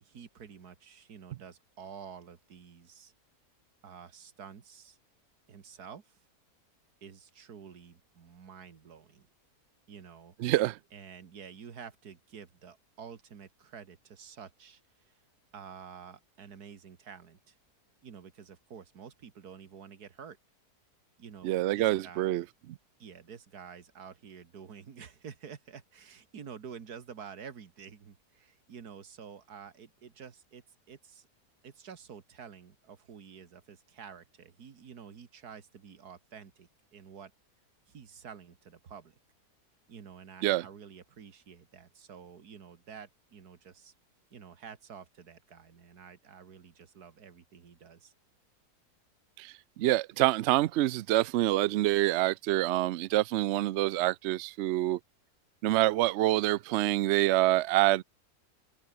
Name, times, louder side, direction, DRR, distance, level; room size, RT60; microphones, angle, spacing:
voice 1, 0.0-3.1 3.8-5.0 5.5-6.2 7.0-9.3 9.9-10.4 10.9-15.2 15.5-17.6 18.0-20.4 21.2-22.5 23.0-31.3 31.6-37.3 37.9-39.1 39.9-43.9 44.3-48.1, right 7 dB, 70° right, 2.2 m, -49 dB
voice 2, 10.4-10.8 21.4-22.4 40.4-40.6 49.4-55.0 55.6-58.0, right 16 dB, 85° right, 0.6 m, -26 dB
omnidirectional pair, 1.7 m